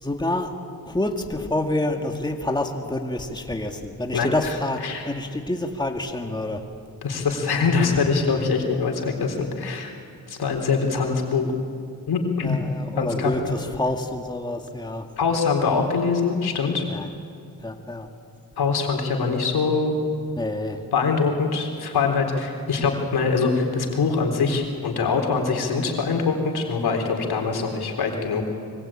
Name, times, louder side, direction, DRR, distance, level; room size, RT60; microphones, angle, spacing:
voice 1, 0.0-0.5 0.9-6.6 12.4-15.1 16.9-17.1 17.6-18.1 20.4-20.9, left 1 dB, 10° left, 4 dB, 2.0 m, -27 dB
voice 2, 4.1-4.6 4.8-5.1 7.0-9.9 10.3-11.5 12.1-12.6 13.0-13.6 15.2-16.8 18.6-20.0 20.9-28.5, left 4 dB, 70° left, 2 dB, 4.0 m, -23 dB
24.5 x 24.0 x 8.9 m, 2.3 s
cardioid pair, 65°, 39 cm